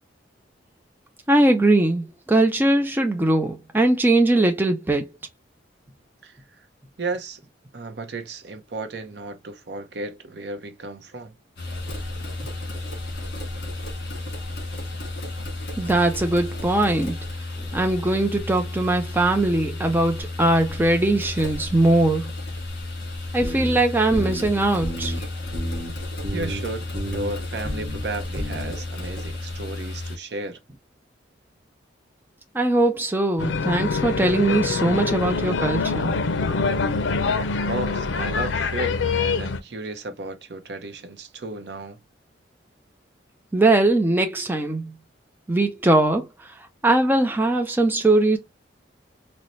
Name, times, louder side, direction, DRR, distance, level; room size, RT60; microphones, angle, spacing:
voice 1, 1.3-5.1 15.8-17.2 17.6-22.3 23.3-25.3 32.5-36.2 43.5-44.9 45.5-46.5 46.8-48.4, right 2 dB, 10° right, 0.4 m, -21 dB
voice 2, 6.2-6.7 7.0-7.4 7.7-11.3 26.3-26.8 27.1-30.6 37.4-42.0, right 2 dB, 60° right, 0.6 m, -34 dB
sound 1, 11.6-30.2, left 2 dB, 55° left, 1.6 m, -33 dB
sound 2, 23.4-23.8 24.1-24.5 24.8-25.2 25.5-25.9 26.2-26.6 26.9-27.3 27.6-28.0 28.4-28.7, equal, 30° right, 0.9 m, -30 dB
sound 3, 33.4-39.6, left 4 dB, 80° left, 0.5 m, -24 dB
4.0 x 2.1 x 3.0 m
head